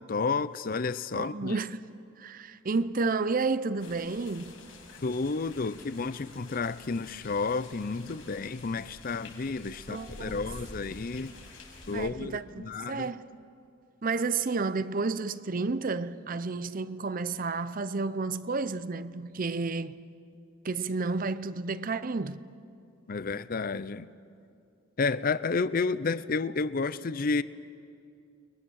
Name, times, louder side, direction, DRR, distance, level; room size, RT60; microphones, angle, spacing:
voice 1, 0.0-1.6 5.0-11.3 11.9-13.1 23.1-24.1 25.0-27.4, left 4 dB, 45° left, 0.5 m, -31 dB
voice 2, 1.1-1.8 2.2-4.6 9.9-10.5 11.9-13.2 14.0-20.0 20.6-22.4, right 4 dB, 40° right, 0.6 m, -31 dB
sound 1, 3.8-12.1, left 2 dB, 75° left, 6.0 m, -49 dB
29.5 x 22.0 x 6.4 m
head